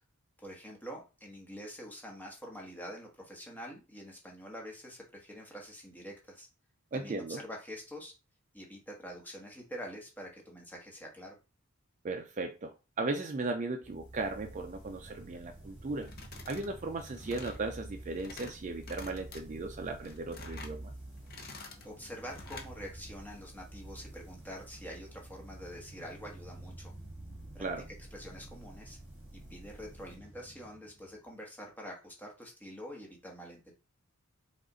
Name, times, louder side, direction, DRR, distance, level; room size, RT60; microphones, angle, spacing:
voice 1, 0.4-6.5 6.9-8.1 8.5-11.4 21.4-26.9 27.5-27.6 28.1-29.0 29.5-33.7, equal, 10° left, 1.2 m, -46 dB
voice 2, 6.9-7.4 12.0-16.1 16.5-20.9 27.6-27.8, right 3 dB, 35° right, 0.3 m, -37 dB
sound 1, 13.8-31.3, right 1 dB, 5° right, 2.3 m, -49 dB
sound 2, 16.0-16.7 17.0-17.6 18.0-18.5 18.8-19.4 19.9-20.8 21.2-21.9 22.3-22.7, left 3 dB, 45° left, 0.8 m, -48 dB
5.0 x 2.4 x 3.8 m
head